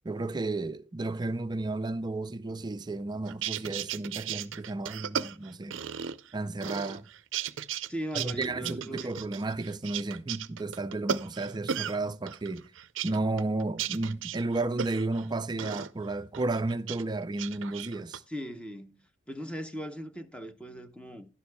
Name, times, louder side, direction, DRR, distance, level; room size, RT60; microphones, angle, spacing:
voice 1, 0.0-5.8 6.3-7.1 8.1-12.6 13.0-18.2, right 2 dB, 20° right, 0.4 m, -33 dB
sound 1, 3.3-6.3 6.6-7.9 8.1-12.0 12.3-15.3 15.6-15.9 16.3-17.0 17.3-18.2, right 8 dB, 75° right, 0.5 m, -35 dB
voice 2, 7.9-9.1 18.3-19.0 19.3-21.3, equal, 5° left, 0.8 m, -39 dB
11.5 x 11.0 x 2.2 m
head